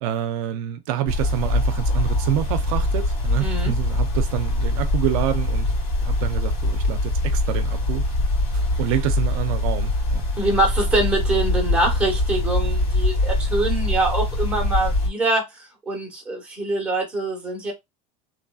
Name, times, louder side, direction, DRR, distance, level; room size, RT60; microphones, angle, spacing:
voice 1, 0.0-5.7 6.0-8.0 8.5-10.3, right 11 dB, 75° right, 0.4 m, -27 dB
sound 1, 1.1-15.1, left 1 dB, 45° left, 2.0 m, -23 dB
voice 2, 3.4-3.7 10.4-17.7, right 2 dB, 5° right, 1.0 m, -24 dB
3.0 x 2.5 x 2.3 m
cardioid pair, 160°, 18 cm